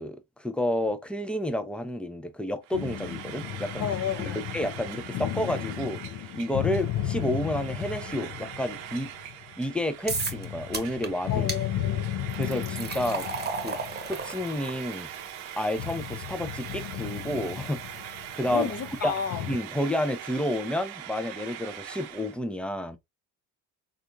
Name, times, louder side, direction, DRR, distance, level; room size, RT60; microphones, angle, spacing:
voice 1, 0.0-6.0 6.3-9.1 9.6-11.5 12.4-13.3 13.6-13.8 14.1-15.1 15.5-18.0 18.3-18.7 19.0-19.2 19.5-23.0, left 1 dB, 5° left, 0.5 m, -30 dB
Frying (food), 2.6-22.4, right 11 dB, 70° right, 0.6 m, -42 dB
sound 1, 2.7-9.6 10.1-14.8 15.7-19.6, left 12 dB, 60° left, 0.5 m, -35 dB
voice 2, 3.8-4.4 11.3-12.0 18.5-19.4, left 7 dB, 40° left, 0.9 m, -31 dB
sound 2, 10.1-10.4 10.7-11.1 11.5-11.6 12.3-19.4, right 4 dB, 25° right, 1.1 m, -37 dB
3.4 x 2.5 x 2.6 m
supercardioid pair, 75°, 39 cm